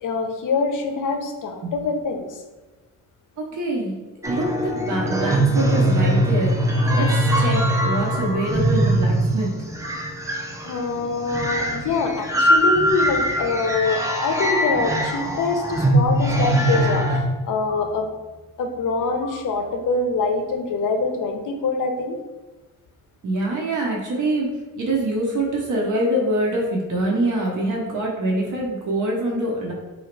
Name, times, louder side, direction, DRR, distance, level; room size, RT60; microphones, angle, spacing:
voice 1, 0.0-2.4 10.6-18.1 18.6-22.2, left 4 dB, 65° left, 5 dB, 0.6 m, -24 dB
voice 2, 3.4-3.9 4.2-6.5 6.9-9.5 23.2-24.5 24.8-29.7, right 1 dB, 60° right, -2 dB, 0.8 m, -24 dB
sound 1, 4.2-17.2, right 1 dB, 10° right, 0.3 m, -21 dB
sound 2, 6.8-6.9 8.3-8.4 9.8-10.0 11.4-11.5 12.9-13.0 14.4-14.6 16.0-16.1 17.7-17.8 19.2-19.4, left 5 dB, 25° left, 1.3 m, -38 dB
2.9 x 2.7 x 4.4 m, 1.2 s
wide cardioid pair, 160°, 35 cm